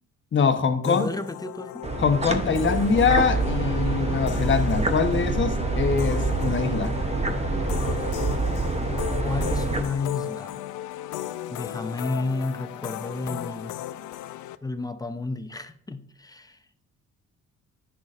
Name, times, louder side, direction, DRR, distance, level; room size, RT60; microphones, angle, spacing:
voice 1, 0.3-1.0 2.0-6.9, left 6 dB, 40° left, 1.0 m, -23 dB
sound 1, 0.8-14.6, left 13 dB, 80° left, 0.5 m, -36 dB
voice 2, 0.8-1.9 9.2-10.6 11.5-13.8 14.6-16.6, left 3 dB, 10° left, 0.6 m, -31 dB
sound 2, 1.8-9.8, right 3 dB, 20° right, 0.8 m, -26 dB
10.0 x 6.5 x 2.5 m
cardioid pair, 90°, 30 cm